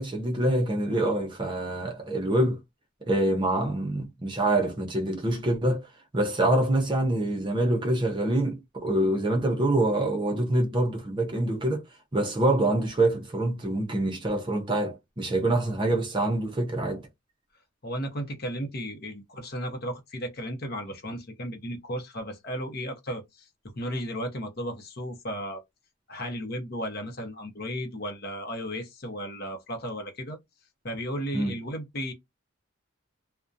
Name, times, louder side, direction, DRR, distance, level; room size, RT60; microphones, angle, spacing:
voice 1, 0.0-2.6 3.0-5.9 6.1-11.8 12.1-17.0 31.3-31.5, right 1 dB, 25° right, 0.5 m, -25 dB
voice 2, 17.8-23.5 23.7-25.6 26.1-30.4 30.8-32.1, equal, 50° left, 0.7 m, -34 dB
2.4 x 2.1 x 2.5 m
head